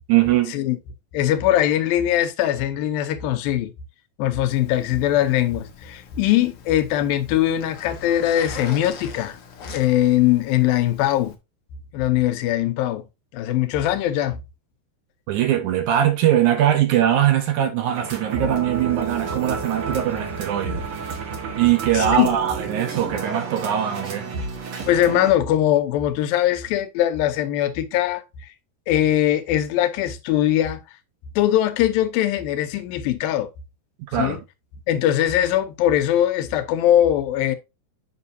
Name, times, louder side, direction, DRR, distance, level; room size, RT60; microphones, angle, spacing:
voice 1, 0.1-0.6 15.3-20.9 21.6-24.3 34.1-34.4, right 11 dB, 70° right, 2.1 m, -21 dB
voice 2, 1.1-3.7 4.2-9.4 9.7-11.3 11.9-13.0 13.3-14.4 21.9-22.3 24.9-28.2 28.9-30.8 31.4-33.5 34.2-34.4 34.9-37.6, left 12 dB, 85° left, 2.6 m, -21 dB
Zipper (clothing), 4.5-11.4, left 5 dB, 70° left, 1.3 m, -42 dB
sound 1, 17.9-25.3, right 5 dB, 55° right, 1.7 m, -30 dB
7.3 x 6.0 x 2.7 m
omnidirectional pair, 4.1 m